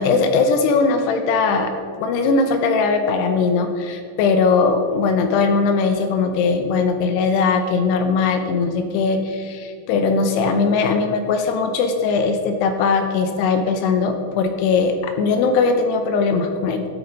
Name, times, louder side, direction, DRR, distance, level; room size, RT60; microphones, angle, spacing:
voice 1, 0.0-1.7 2.0-16.9, left 4 dB, 90° left, 6 dB, 2.4 m, -19 dB
13.0 x 8.7 x 5.2 m, 2.4 s
omnidirectional pair, 5.7 m